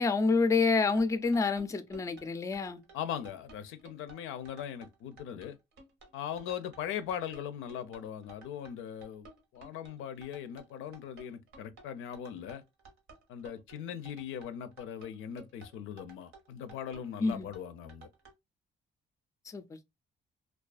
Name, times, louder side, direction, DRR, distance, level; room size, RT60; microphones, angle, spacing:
voice 1, 0.0-2.8 17.2-17.5 19.5-19.8, left 4 dB, 15° left, 0.3 m, -28 dB
sound 1, 0.8-18.3, right 3 dB, 85° right, 0.9 m, -55 dB
voice 2, 2.9-5.6 6.1-9.3 9.5-12.6 13.3-18.1, left 9 dB, 90° left, 0.4 m, -40 dB
2.4 x 2.3 x 2.3 m
cardioid pair, 90°, 20 cm